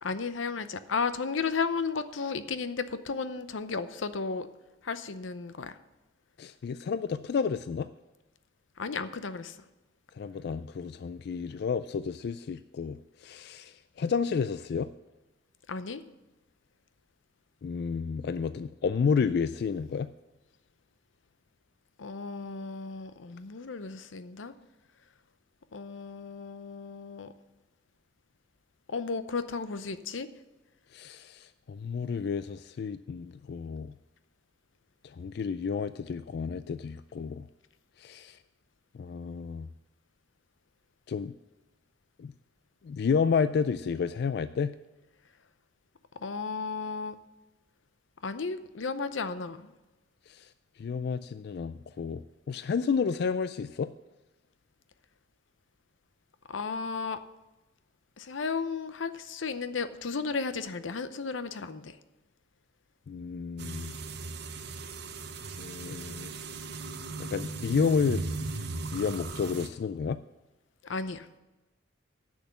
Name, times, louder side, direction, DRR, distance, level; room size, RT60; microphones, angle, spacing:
voice 1, 0.0-4.5 4.8-5.7 8.8-9.5 15.7-16.0 22.0-24.5 25.7-27.3 28.9-30.3 46.2-47.2 48.2-49.7 56.5-57.2 58.2-61.9 70.9-71.3, left 4 dB, 90° left, 12 dB, 0.7 m, -34 dB
voice 2, 6.4-7.9 10.1-14.9 17.6-20.1 30.9-34.0 35.0-37.5 38.0-38.4 38.9-39.7 41.1-41.3 42.2-42.3 42.8-44.7 50.3-50.5 50.8-53.9 63.1-63.9 65.6-66.3 67.2-68.3 68.9-70.2, left 6 dB, 60° left, 13 dB, 0.3 m, -31 dB
sound 1, 63.6-69.7, right 3 dB, 60° right, 0.9 m, -37 dB
10.0 x 6.3 x 7.1 m, 1.1 s
head